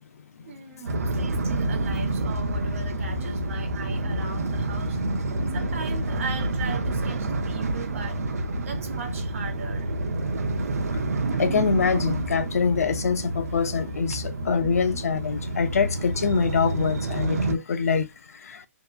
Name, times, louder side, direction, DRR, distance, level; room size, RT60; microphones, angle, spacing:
voice 1, 0.4-5.0 5.5-8.2 8.6-9.9, right 5 dB, 65° right, 1.0 m, -38 dB
sound 1, 0.9-17.5, right 2 dB, 90° right, 0.6 m, -28 dB
voice 2, 11.4-18.1 18.5-18.6, left 5 dB, 80° left, 0.5 m, -24 dB
2.8 x 2.2 x 2.4 m
hypercardioid pair, 160°, 8 cm